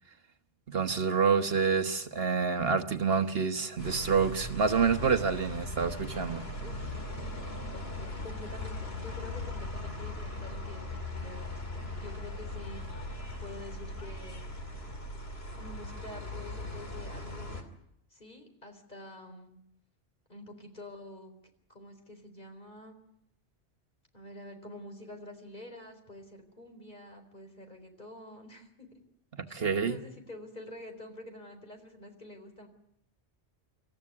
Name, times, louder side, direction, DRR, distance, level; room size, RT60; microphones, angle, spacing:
voice 1, 0.7-6.4 29.3-30.0, right 5 dB, 60° right, 7 dB, 1.3 m, -28 dB
voice 2, 3.2-3.7 6.6-6.9 7.7-12.8 13.4-14.4 15.6-17.7 18.1-19.6 20.3-21.3 21.7-22.9 24.1-28.9 29.5-32.7, left 1 dB, 40° left, 5 dB, 4.2 m, -48 dB
sound 1, 3.8-17.6, left 1 dB, 60° left, 3.0 m, -39 dB
27.5 x 14.5 x 9.6 m, 0.76 s
omnidirectional pair, 1.2 m